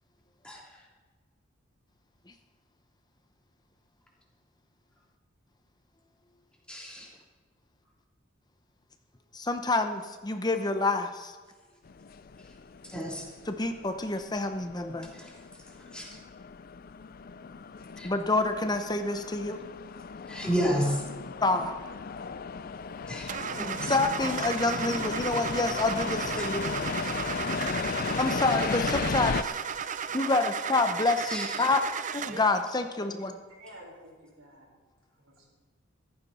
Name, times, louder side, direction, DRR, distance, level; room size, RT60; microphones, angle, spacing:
voice 1, 6.7-7.1 12.9-13.2 15.1-15.3 15.9-16.1 18.0-18.1 20.3-21.0 23.1-23.9 26.4-26.5 31.3-31.5, equal, 5° left, -3 dB, 3.2 m, -31 dB
voice 2, 9.3-11.3 13.5-15.1 18.0-19.6 21.4-21.7 23.9-26.7 28.2-29.6 30.1-31.8 32.1-33.3, left 2 dB, 20° left, 7 dB, 0.8 m, -27 dB
sound 1, 11.9-29.4, left 5 dB, 45° left, 0.4 m, -36 dB
Car / Engine starting, 23.3-32.6, right 7 dB, 40° right, 0.5 m, -35 dB
voice 3, 33.6-34.7 35.2-35.5, equal, 90° right, -2 dB, 5.8 m, -50 dB
14.5 x 14.5 x 4.3 m, 1.4 s
head